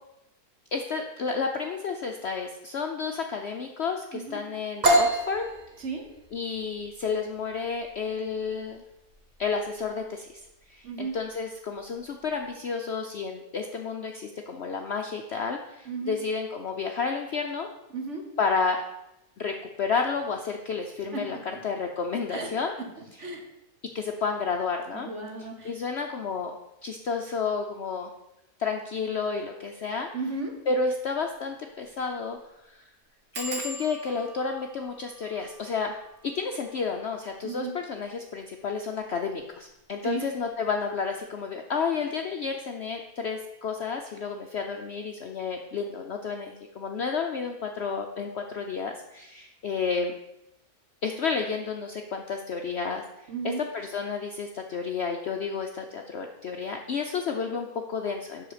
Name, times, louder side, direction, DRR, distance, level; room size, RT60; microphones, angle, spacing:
voice 1, 0.7-5.5 6.3-8.8 9.4-17.7 18.4-18.8 19.4-21.4 21.6-22.7 23.1-23.2 23.9-25.1 25.4-26.6 26.8-28.1 28.6-30.1 30.7-32.4 32.6-32.9 33.3-36.0 36.2-50.1 51.0-58.5, left 5 dB, 60° left, 4 dB, 0.7 m, -31 dB
sound 1, 4.8-12.5, right 1 dB, 35° right, 0.9 m, -30 dB
voice 2, 10.8-11.1 15.8-16.2 17.9-18.2 21.1-21.6 22.3-22.5 23.2-23.4 24.9-25.7 30.1-30.5 37.4-37.7 40.0-40.2 53.3-53.6, right 4 dB, 50° right, 2 dB, 1.5 m, -34 dB
sound 2, 30.2-30.4 30.8-30.9 31.1-31.2 31.8-32.0 32.3-32.4 33.3-38.6 39.3-39.8 40.1-40.5 40.7-40.8, right 1 dB, 70° right, 2.0 m, -43 dB
7.8 x 6.2 x 4.9 m, 0.89 s
omnidirectional pair, 1.7 m